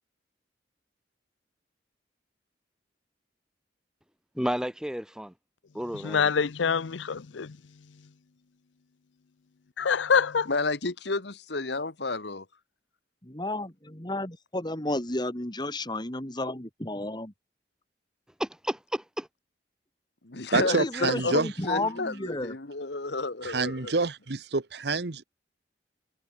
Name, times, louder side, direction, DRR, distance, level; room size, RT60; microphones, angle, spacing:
voice 1, 4.4-5.3 5.7-6.3 18.4-19.3, equal, 5° right, 2.0 m, -32 dB
voice 2, 5.9-7.6 9.8-10.6, left 6 dB, 85° left, 0.6 m, -26 dB
voice 3, 10.5-12.4 20.2-24.1, left 3 dB, 65° left, 1.5 m, -31 dB
voice 4, 13.2-17.3 20.6-22.5, left 2 dB, 25° left, 2.8 m, -32 dB
voice 5, 20.5-21.5 23.4-25.2, right 3 dB, 60° right, 1.1 m, -27 dB
head